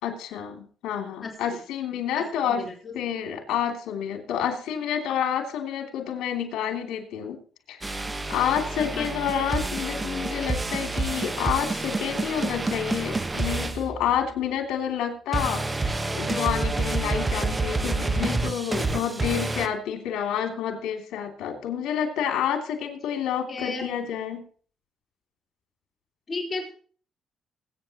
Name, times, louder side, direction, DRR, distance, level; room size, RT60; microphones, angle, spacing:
voice 1, 0.0-2.6 2.9-7.4 7.7-8.0 8.3-24.4, left 9 dB, 85° left, 5 dB, 2.9 m, -29 dB
voice 2, 2.2-2.9 8.8-9.2 17.6-18.0 23.5-23.9 26.3-26.7, left 3 dB, 40° left, 0 dB, 4.1 m, -34 dB
sound 1, 7.8-14.5 15.3-19.7, right 3 dB, 20° right, 1.3 m, -28 dB
21.5 x 9.2 x 3.0 m, 0.43 s
cardioid pair, 90°, 0 cm